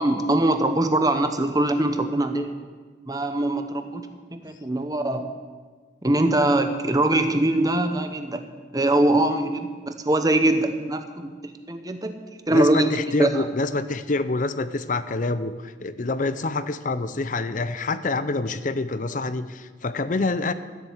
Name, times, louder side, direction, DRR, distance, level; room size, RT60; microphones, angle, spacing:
voice 1, 0.0-2.5 3.1-4.0 4.3-5.3 6.0-8.4 8.7-12.1 12.5-13.4, right 1 dB, 20° right, 7 dB, 0.9 m, -22 dB
voice 2, 12.5-20.5, left 3 dB, 45° left, 13 dB, 0.6 m, -26 dB
13.5 x 7.4 x 8.0 m, 1.5 s
head